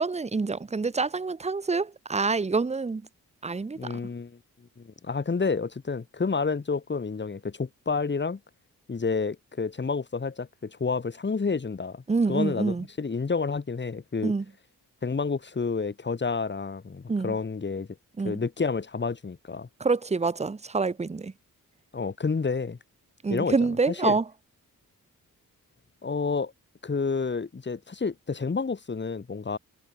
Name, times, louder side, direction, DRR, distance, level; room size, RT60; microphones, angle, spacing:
voice 1, 0.0-3.0 3.4-3.8 12.1-12.8 14.2-14.4 17.1-17.3 18.2-18.3 19.8-21.3 23.2-24.2, right 4 dB, 20° right, 0.7 m, -26 dB
voice 2, 3.8-4.4 4.8-8.4 8.9-14.3 15.0-17.9 18.2-19.7 21.9-22.8 23.3-23.5 23.9-24.2 26.0-26.5 26.8-29.6, left 4 dB, 30° left, 1.3 m, -29 dB
cardioid pair, 65°, 36 cm